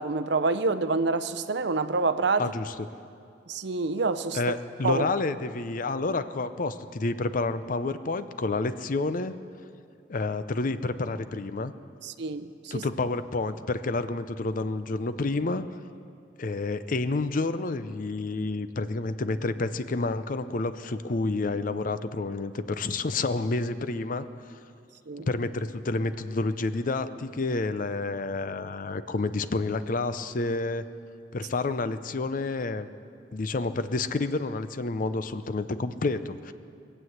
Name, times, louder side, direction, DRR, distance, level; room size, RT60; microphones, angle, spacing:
voice 1, 0.0-2.5 3.5-4.4 4.8-5.1 12.0-12.9 25.1-25.3, right 3 dB, 65° right, 12 dB, 0.6 m, -27 dB
voice 2, 2.4-2.9 4.3-9.3 10.1-11.7 12.7-15.6 16.4-24.3 25.3-30.8 31.3-32.9 33.3-36.5, left 3 dB, 50° left, 12 dB, 0.6 m, -29 dB
20.5 x 7.8 x 7.9 m, 2.4 s
head